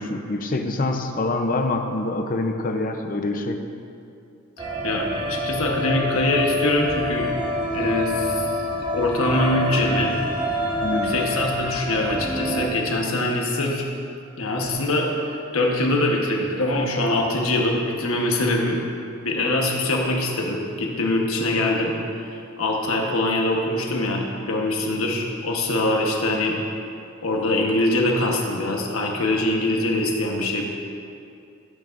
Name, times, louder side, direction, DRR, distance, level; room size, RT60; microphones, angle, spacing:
voice 1, 0.0-3.6 10.8-11.1, left 2 dB, 40° left, 5 dB, 0.6 m, -25 dB
voice 2, 4.6-7.3 7.7-8.7 8.9-10.1 10.9-13.8 14.4-18.8 19.2-26.6 27.2-30.6, left 1 dB, 85° left, 0 dB, 1.2 m, -23 dB
sound 1, 4.6-12.7, left 1 dB, 20° right, 1.1 m, -27 dB
14.0 x 8.8 x 2.6 m, 2.5 s
head